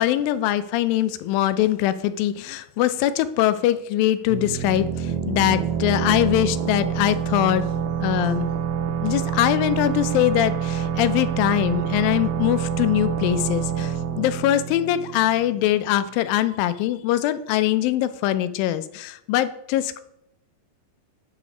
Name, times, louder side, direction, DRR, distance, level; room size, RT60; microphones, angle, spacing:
voice 1, 0.0-7.6 8.0-8.5 9.0-20.0, left 13 dB, 85° left, 12 dB, 2.2 m, -22 dB
sound 1, 4.3-15.8, right 8 dB, 90° right, 2.4 m, -27 dB
10.0 x 4.0 x 4.9 m, 0.79 s
omnidirectional pair, 4.1 m